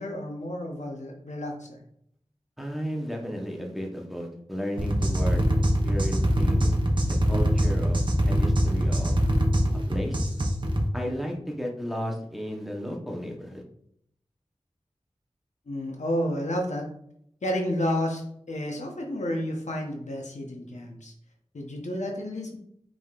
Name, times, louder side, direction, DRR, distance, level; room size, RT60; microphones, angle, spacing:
voice 1, 0.0-1.8 15.7-16.8 17.4-21.1 21.5-22.6, equal, 85° left, 1 dB, 0.9 m, -31 dB
voice 2, 2.6-5.4 5.8-6.8 7.0-9.2 9.9-10.2 10.9-13.6, equal, ahead, 0 dB, 0.9 m, -33 dB
sound 1, 4.8-10.9, equal, 45° right, 0.8 m, -23 dB
5.2 x 3.7 x 2.4 m, 0.69 s
wide cardioid pair, 65°, 12 cm